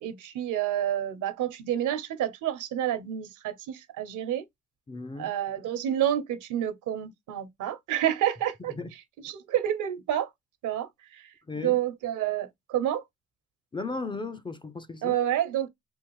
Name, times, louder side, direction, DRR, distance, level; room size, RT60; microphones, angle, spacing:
voice 1, 0.0-4.4 5.2-8.7 9.2-10.3 10.6-13.0 15.0-15.7, right 11 dB, 85° right, 0.9 m, -29 dB
voice 2, 4.9-5.3 8.8-8.9 11.5-11.8 13.7-15.1, left 3 dB, 15° left, 0.4 m, -35 dB
3.5 x 2.5 x 3.0 m
cardioid pair, 90°, 30 cm